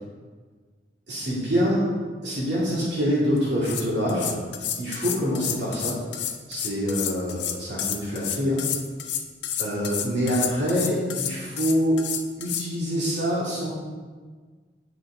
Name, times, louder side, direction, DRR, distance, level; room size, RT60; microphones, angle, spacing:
voice 1, 1.1-1.8 2.2-4.4 4.8-6.0 6.5-8.6 9.6-12.0 12.4-13.7, equal, 80° right, -8 dB, 2.1 m, -25 dB
sound 1, 3.4-3.5 3.6-12.7, left 9 dB, 85° left, 0.5 m, -30 dB
9.3 x 4.1 x 3.7 m, 1.5 s
head